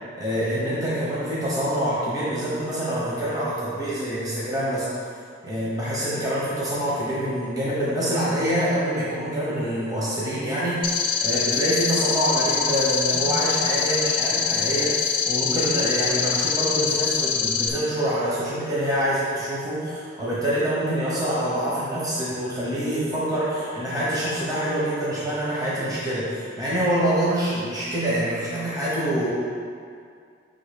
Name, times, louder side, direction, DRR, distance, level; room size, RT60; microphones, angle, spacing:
voice 1, 0.2-4.9 5.4-29.3, equal, 20° right, -9 dB, 1.1 m, -26 dB
sound 1, 10.8-17.7, left 6 dB, 25° left, 0.6 m, -24 dB
6.3 x 3.8 x 5.2 m, 2.2 s
head